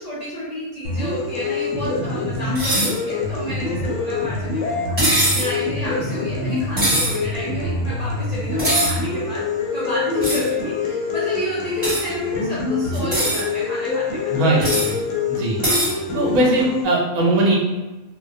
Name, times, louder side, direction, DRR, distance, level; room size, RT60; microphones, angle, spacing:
voice 1, 0.0-5.0 5.3-14.3 16.2-16.3, equal, 55° left, -9 dB, 0.4 m, -30 dB
sound 1, 0.8-16.8, left 4 dB, 70° left, 0.8 m, -25 dB
sound 2, 2.5-2.9 5.0-5.5 6.8-7.1 8.6-8.9 10.2-10.5 11.8-12.0 12.9-13.4 14.6-14.9 15.6-15.9, right 1 dB, 25° right, 0.8 m, -21 dB
voice 2, 14.3-15.0 15.3-15.6 16.1-17.6, right 2 dB, 75° right, -2 dB, 1.0 m, -19 dB
2.2 x 2.2 x 2.5 m, 1.2 s
omnidirectional pair, 1.4 m